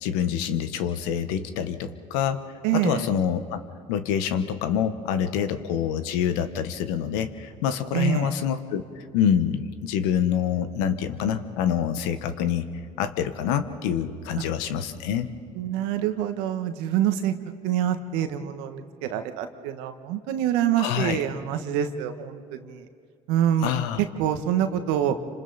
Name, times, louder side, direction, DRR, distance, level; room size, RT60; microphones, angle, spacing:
voice 1, 0.0-2.4 2.7-3.6 3.9-12.7 13.0-15.3 20.8-21.2 23.6-24.0, left 8 dB, 80° left, 10 dB, 1.3 m, -26 dB
voice 2, 2.6-3.1 7.9-8.3 14.4-14.5 15.5-17.3 17.6-22.8 23.3-23.7 24.0-25.2, right 10 dB, 80° right, 8 dB, 1.4 m, -26 dB
29.0 x 26.0 x 4.2 m, 2.3 s
supercardioid pair, 75°, 18 cm